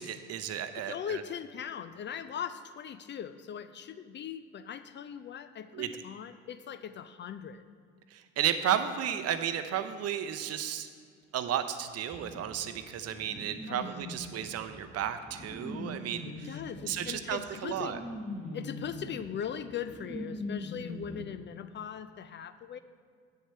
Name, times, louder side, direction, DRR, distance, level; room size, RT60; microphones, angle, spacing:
voice 1, 0.0-1.2 5.7-5.9 8.1-10.9 11.3-16.6 16.9-18.0, right 9 dB, 40° right, 10 dB, 0.7 m, -33 dB
voice 2, 0.8-7.6 13.7-13.9 16.2-18.0 18.5-22.8, left 8 dB, 30° left, 11 dB, 0.5 m, -40 dB
sound 1, 12.1-21.2, left 1 dB, 20° right, 1.6 m, -42 dB
9.2 x 7.2 x 4.5 m, 2.1 s
figure-of-eight pair, 60°, 37 cm